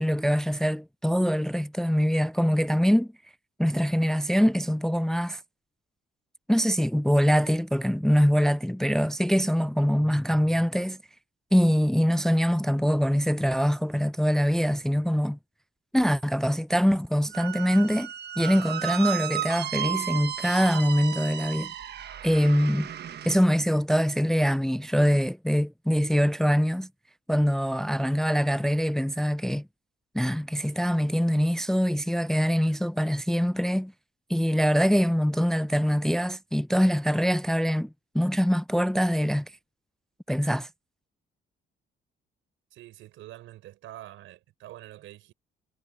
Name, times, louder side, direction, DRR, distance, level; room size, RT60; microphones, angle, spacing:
voice 1, 0.0-3.1 3.6-5.4 6.5-11.0 11.5-15.4 15.9-18.1 18.4-21.7 22.2-22.9 23.2-26.9 27.3-29.7 30.1-33.9 34.3-37.9 38.1-39.5 40.3-40.7, equal, ahead, 0.5 m, -24 dB
Squeak, 17.3-23.4, right 11 dB, 55° right, 1.3 m, -34 dB
voice 2, 42.7-45.3, right 14 dB, 90° right, 5.1 m, -46 dB
cardioid pair, 90°, 20 cm